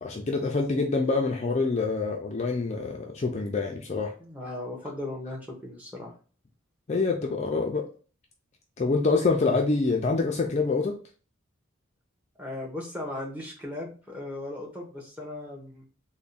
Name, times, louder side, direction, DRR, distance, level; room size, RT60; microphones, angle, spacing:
voice 1, 0.0-4.1 6.9-7.9 8.8-11.0, left 3 dB, 35° left, 1 dB, 0.4 m, -26 dB
voice 2, 4.2-6.1 12.4-15.8, left 1 dB, 10° right, -2 dB, 0.8 m, -37 dB
3.4 x 2.1 x 3.9 m, 0.38 s
head